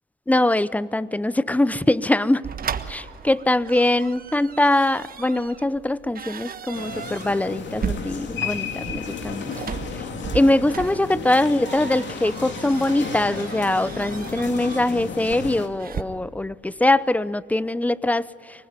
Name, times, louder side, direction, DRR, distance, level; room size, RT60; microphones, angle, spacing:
voice 1, 0.3-2.5 2.9-9.5 9.9-10.0 10.3-18.7, left 1 dB, 5° left, 18 dB, 0.7 m, -22 dB
sound 1, 2.4-16.0, right 7 dB, 45° right, 1.4 m, -36 dB
sound 2, 6.7-15.7, left 5 dB, 65° left, 2.9 m, -33 dB
25.5 x 20.0 x 9.6 m, 2.3 s
cardioid pair, 90°, 20 cm